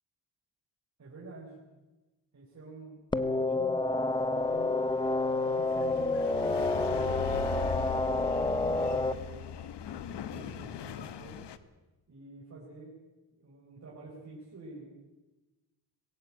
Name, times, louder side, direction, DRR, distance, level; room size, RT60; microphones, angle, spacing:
voice 1, 1.0-1.6 2.3-4.8 5.4-8.7 9.1-9.5 9.9-11.4 12.1-13.0 13.4-14.9, right 3 dB, 40° right, -4 dB, 4.9 m, -49 dB
sound 1, 3.1-9.1, left 2 dB, 10° left, 0.8 m, -29 dB
sound 2, 4.0-11.6, left 7 dB, 85° left, 1.2 m, -40 dB
21.0 x 16.0 x 8.8 m, 1.1 s
cardioid pair, 115°, 41 cm